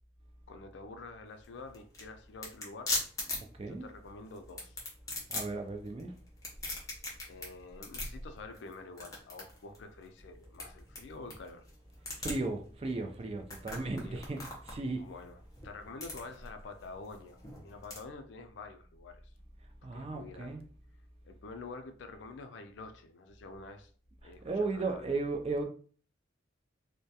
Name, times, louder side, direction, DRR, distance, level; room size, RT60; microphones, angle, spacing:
voice 1, 0.5-3.0 3.7-4.8 7.3-11.6 14.0-14.2 15.0-15.4 15.6-17.4 17.6-19.2 19.9-20.6 21.2-23.9 24.2-25.2, left 3 dB, 70° left, 0.4 m, -47 dB
sound 1, 1.3-18.0, left 2 dB, 20° left, 0.6 m, -42 dB
voice 2, 5.3-6.1 12.2-15.1 19.8-20.6 24.2-25.6, right 3 dB, 30° right, 0.3 m, -35 dB
2.2 x 2.1 x 2.7 m
head